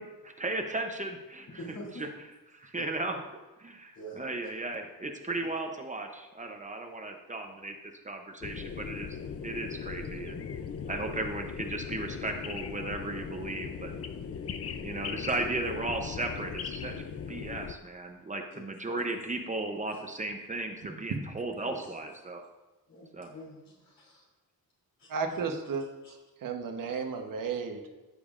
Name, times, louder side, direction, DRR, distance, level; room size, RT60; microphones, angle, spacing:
voice 1, 0.0-1.6 2.0-2.1 2.5-3.2 3.6-7.7 8.0-9.2 9.4-10.4 10.9-13.9 14.8-17.0 17.3-22.4 23.1-23.3, right 2 dB, 20° right, 4 dB, 0.7 m, -35 dB
voice 2, 1.6-2.0 2.8-2.9 3.9-4.2 5.4-5.5 10.9-11.0 14.6-14.9 15.3-15.4 18.5-19.0 19.9-20.0 21.6-21.8 22.9-24.3 25.0-25.4 26.0-26.1 26.9-27.0, equal, 65° left, -5 dB, 3.0 m, -47 dB
sound 1, 8.4-17.7, left 6 dB, 40° left, 0.4 m, -39 dB
voice 3, 25.1-26.2 26.4-27.8, right 5 dB, 60° right, 4 dB, 1.1 m, -33 dB
15.0 x 6.9 x 2.5 m, 1.1 s
wide cardioid pair, 180°, 37 cm